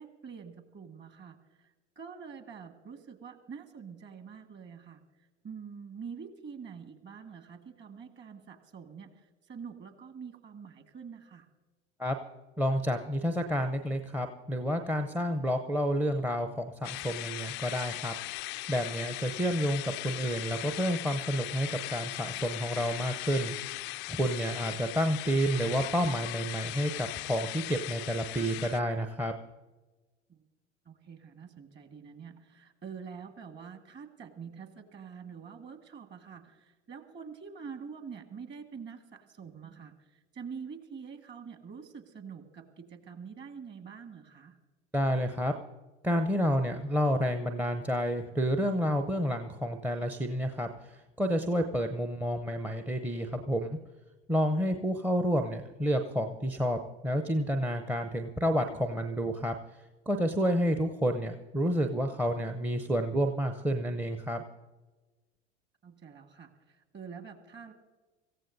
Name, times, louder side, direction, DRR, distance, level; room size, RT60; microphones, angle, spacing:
voice 1, 0.0-1.4 2.0-5.0 5.4-9.1 9.5-11.5 30.3-30.4 30.9-39.9 40.3-44.6 65.8-67.7, right 6 dB, 30° right, 7 dB, 1.9 m, -46 dB
voice 2, 12.6-18.1 18.7-29.3 44.9-45.5 46.0-53.7 54.3-59.5 60.1-64.4, equal, 5° right, 5 dB, 0.7 m, -30 dB
sound 1, 16.8-28.8, left 21 dB, 35° left, 0.4 m, -39 dB
25.5 x 15.0 x 2.7 m, 1.2 s
figure-of-eight pair, 80°, 34 cm